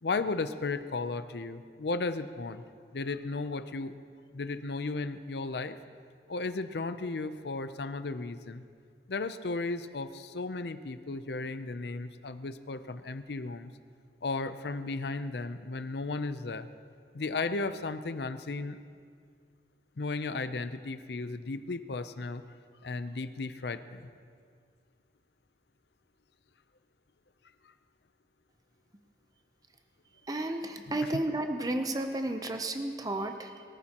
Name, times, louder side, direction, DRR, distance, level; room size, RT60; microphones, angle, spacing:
voice 1, 0.0-2.6 2.9-4.0 4.3-5.8 6.3-8.6 9.1-13.7 14.2-16.7 17.1-18.8 20.0-22.4 22.8-24.1, left 3 dB, 65° left, 11 dB, 0.6 m, -35 dB
voice 2, 30.2-33.6, right 1 dB, 20° right, 6 dB, 0.7 m, -32 dB
22.5 x 14.0 x 3.0 m, 2.1 s
head